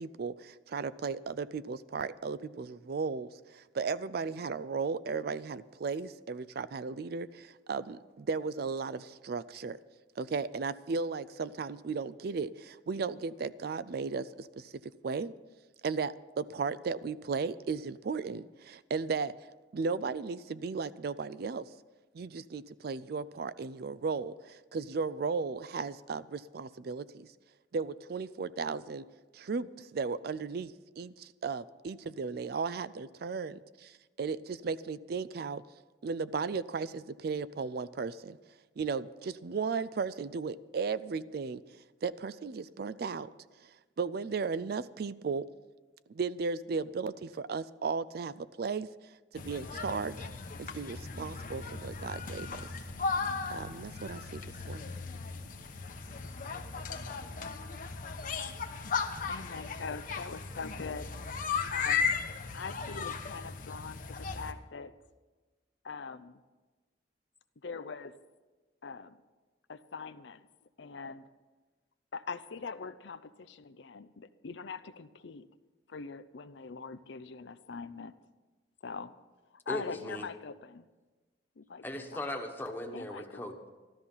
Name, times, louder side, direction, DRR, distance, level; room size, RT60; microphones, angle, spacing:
voice 1, 0.0-9.8 10.2-15.3 15.8-19.3 19.7-21.7 22.1-27.3 27.7-29.0 29.3-35.6 36.0-38.4 38.8-41.6 42.0-43.3 43.6-43.7 44.0-45.5 46.1-48.9 49.3-50.3 50.6-52.6 53.5-54.9, right 5 dB, 55° right, 16 dB, 0.4 m, -35 dB
sound 1, 49.4-64.5, left 5 dB, 45° left, 1.0 m, -36 dB
voice 2, 59.3-61.1 61.7-62.1 62.5-65.0 65.8-66.4 67.6-68.2 68.8-69.2 69.7-70.4 70.8-71.3 72.1-75.5 75.9-78.1 78.8-79.1 79.5-80.9 81.6-81.8 82.1-82.2 82.9-83.5, left 5 dB, 70° left, 12 dB, 0.6 m, -42 dB
voice 3, 79.7-80.3 81.8-83.7, left 1 dB, 10° left, 3 dB, 1.3 m, -38 dB
13.5 x 13.0 x 5.6 m, 1.2 s
head